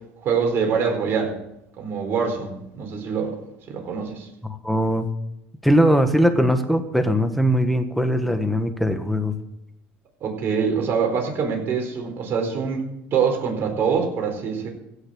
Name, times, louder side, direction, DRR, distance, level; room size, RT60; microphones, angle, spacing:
voice 1, 0.2-1.4 1.8-3.4 3.7-4.3 10.2-14.7, right 6 dB, 50° right, 2 dB, 4.3 m, -24 dB
voice 2, 4.4-5.1 5.6-9.3, equal, ahead, 8 dB, 1.5 m, -20 dB
16.0 x 6.5 x 7.9 m, 0.84 s
supercardioid pair, 100°, 5 cm